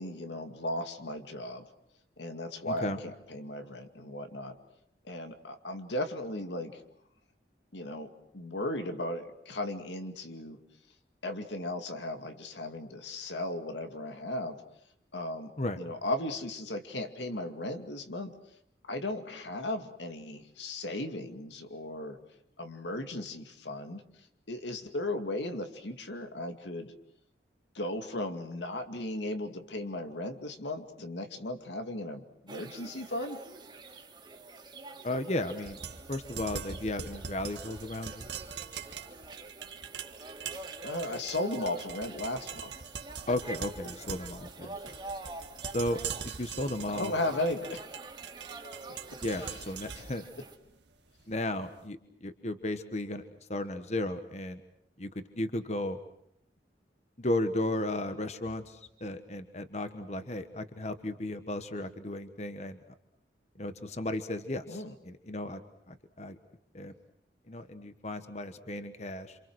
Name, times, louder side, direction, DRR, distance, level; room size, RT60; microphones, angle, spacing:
voice 1, 0.0-1.6 2.2-4.6 5.0-6.8 7.7-10.6 11.2-14.6 15.1-18.4 18.8-22.2 22.6-24.0 24.5-26.9 27.7-33.4 40.8-42.7 44.6-44.7 47.0-47.8 49.4-49.5 64.7-64.9, left 1 dB, 90° left, 6 dB, 2.4 m, -36 dB
voice 2, 2.6-3.0 15.6-15.8 35.0-38.3 43.3-44.7 45.7-47.1 49.2-50.2 51.3-53.2 53.5-54.6 55.0-56.0 57.2-62.8 63.6-65.6 65.9-66.4 66.7-66.9 67.5-69.4, left 1 dB, 40° left, 9 dB, 1.3 m, -34 dB
sound 1, 32.5-50.6, right 2 dB, 25° right, 2.5 m, -47 dB
sound 2, 35.6-51.6, right 7 dB, 80° right, 1.7 m, -43 dB
28.0 x 27.5 x 6.3 m, 0.74 s
head